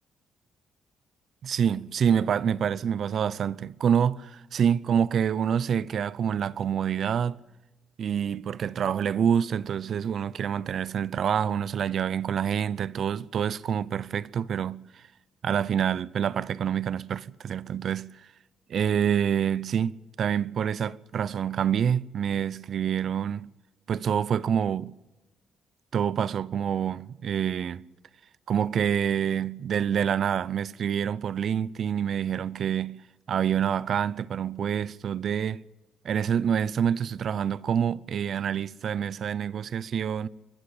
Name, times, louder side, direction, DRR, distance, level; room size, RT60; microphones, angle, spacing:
voice 1, 1.4-7.4 8.0-15.0 15.4-18.3 18.7-23.5 23.9-24.9 25.9-27.8 28.5-33.0 33.3-35.6 36.0-40.3, right 8 dB, 60° right, 0.6 m, -27 dB
24.0 x 13.0 x 8.8 m
cardioid pair, 90°, 0 cm